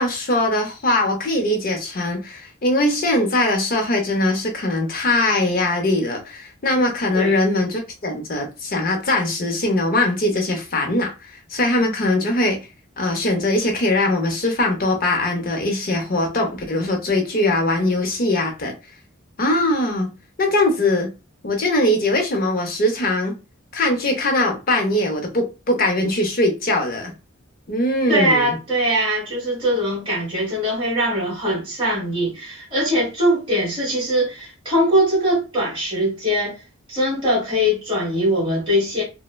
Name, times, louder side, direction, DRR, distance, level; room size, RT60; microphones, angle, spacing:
voice 1, 0.0-12.6 13.0-18.7 19.4-20.1 20.4-21.1 21.4-23.3 23.7-27.1 27.7-28.5, left 1 dB, 40° left, 0.6 m, -21 dB
voice 2, 28.1-36.6 36.9-39.0, equal, 25° right, 1.4 m, -21 dB
3.0 x 2.1 x 2.2 m
head